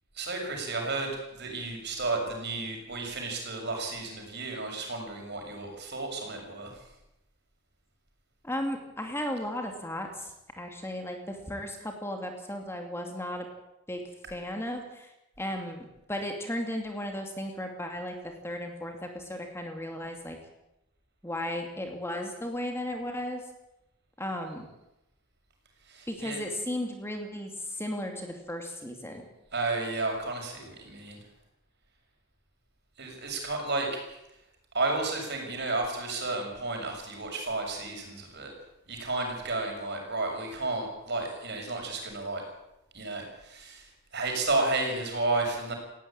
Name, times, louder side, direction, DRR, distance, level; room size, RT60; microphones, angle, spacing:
voice 1, 0.1-6.8 25.9-26.4 29.5-31.2 33.0-34.2 34.7-38.5 38.9-42.4 42.9-45.7, right 3 dB, 55° right, 3 dB, 6.6 m, -32 dB
voice 2, 8.4-13.5 13.9-14.0 14.3-15.1 15.4-15.8 16.1-18.1 18.4-20.4 21.2-23.4 24.2-24.6 26.1-29.2, left 1 dB, 10° left, 3 dB, 2.5 m, -35 dB
19.0 x 16.0 x 8.9 m, 0.89 s
head